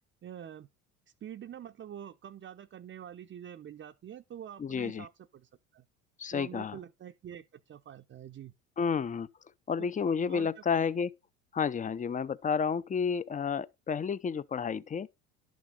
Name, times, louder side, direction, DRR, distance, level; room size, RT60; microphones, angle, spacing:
voice 1, 0.2-0.7 1.2-5.8 6.3-8.5 9.8-9.9 10.3-10.8, right 10 dB, 30° right, 0.7 m, -46 dB
voice 2, 4.6-5.1 6.2-6.8 8.8-9.3 9.7-11.1 11.5-15.1, left 6 dB, 20° left, 0.6 m, -31 dB
11.5 x 6.2 x 3.9 m
hypercardioid pair, 75°, 40 cm